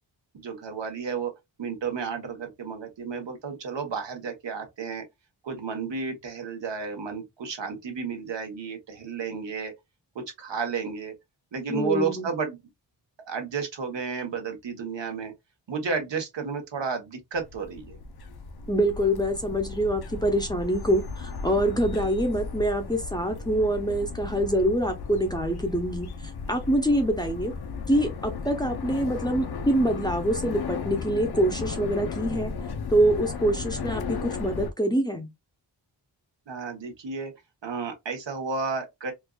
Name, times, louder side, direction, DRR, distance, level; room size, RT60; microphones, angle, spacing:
voice 1, 0.3-1.3 1.6-5.0 5.4-9.7 10.1-11.1 11.5-12.6 13.2-15.3 15.7-18.0 36.5-37.3 37.6-39.1, right 5 dB, 75° right, 1.2 m, -32 dB
voice 2, 11.7-12.3 18.7-26.1 26.5-27.5 27.9-32.5 32.9-35.3, right 1 dB, 10° left, 0.7 m, -25 dB
sound 1, 17.4-34.7, left 5 dB, 60° left, 0.7 m, -35 dB
4.4 x 2.4 x 2.3 m
wide cardioid pair, 145°, 44 cm